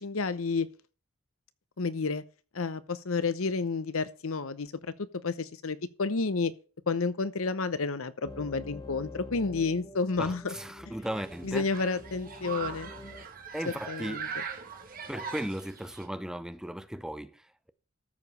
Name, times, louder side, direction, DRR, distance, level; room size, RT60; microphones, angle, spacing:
voice 1, 0.0-0.7 1.8-2.2 2.5-6.5 6.9-10.6 11.4-13.2 13.6-14.3, left 4 dB, 75° left, 0.8 m, -31 dB
sound 1, 8.2-13.2, left 2 dB, 15° left, 1.1 m, -46 dB
voice 2, 10.2-11.7 13.5-14.2 15.1-17.7, equal, 5° right, 0.5 m, -37 dB
Human group actions, 11.0-16.1, right 6 dB, 40° right, 1.9 m, -41 dB
13.5 x 5.0 x 6.6 m
head